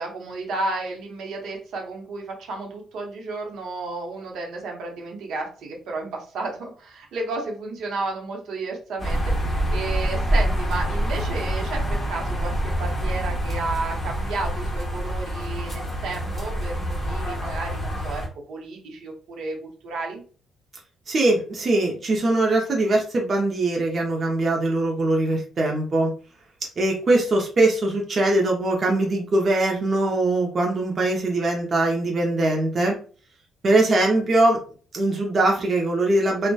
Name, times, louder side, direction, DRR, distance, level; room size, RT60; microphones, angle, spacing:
voice 1, 0.0-20.2, right 3 dB, 75° right, 1 dB, 0.7 m, -32 dB
sound 1, 9.0-18.3, equal, 20° left, 0.9 m, -26 dB
voice 2, 21.1-26.1 26.8-33.0 33.6-34.6 34.9-36.5, right 2 dB, 35° right, 0 dB, 0.5 m, -21 dB
2.7 x 2.1 x 2.2 m, 0.40 s
cardioid pair, 155°, 0 cm